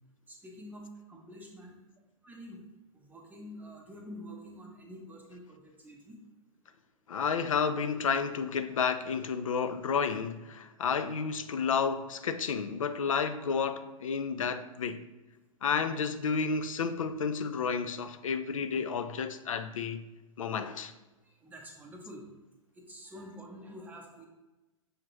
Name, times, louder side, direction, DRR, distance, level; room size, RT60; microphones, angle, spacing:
voice 1, 0.3-1.8 2.2-2.6 2.9-6.2 21.4-22.2 22.8-24.3, equal, 10° right, 0.6 m, -47 dB
voice 2, 7.1-15.0 15.6-20.1 20.4-20.9, left 6 dB, 70° left, 0.4 m, -31 dB
6.3 x 2.4 x 3.0 m
figure-of-eight pair, 105°, 18 cm